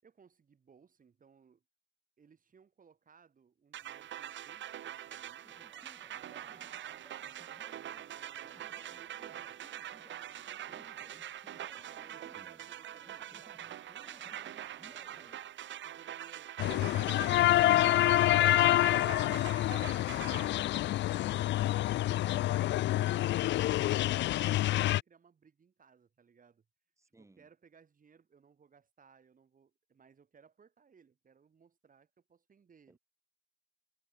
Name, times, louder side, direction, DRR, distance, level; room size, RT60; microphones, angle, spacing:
voice 1, 0.0-1.6 2.2-5.5 6.3-7.1 7.7-11.1 11.9-13.7 14.2-15.4 15.8-20.8 21.3-22.7 23.3-26.7 27.2-33.0, right 6 dB, 45° right, 6.4 m, -63 dB
sound 1, 3.7-20.5, right 11 dB, 70° right, 2.8 m, -44 dB
sound 2, 5.4-15.4, equal, 5° left, 4.7 m, -62 dB
voice 2, 12.2-12.7 27.0-27.5 32.9-33.0, right 2 dB, 15° right, 3.9 m, -62 dB
sound 3, 16.6-25.0, left 15 dB, 65° left, 0.4 m, -27 dB
cardioid pair, 90°, 20 cm